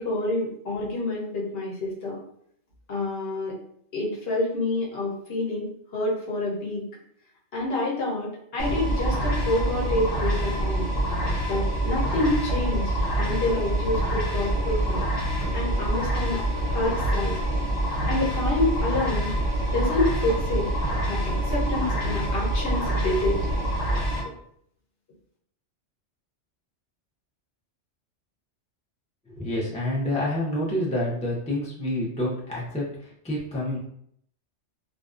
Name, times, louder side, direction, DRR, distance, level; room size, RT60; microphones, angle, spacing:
voice 1, 0.0-2.2 2.9-3.6 3.9-5.7 5.9-6.8 7.5-10.9 11.5-15.1 15.5-17.4 18.1-19.3 19.7-20.7 21.0-23.4, left 2 dB, 60° left, -5 dB, 1.0 m, -28 dB
sound 1, 8.6-24.2, right 1 dB, 75° left, 1.2 m, -26 dB
voice 2, 29.3-33.8, left 1 dB, 10° left, -5 dB, 0.3 m, -28 dB
2.5 x 2.2 x 2.4 m, 0.68 s
omnidirectional pair, 1.2 m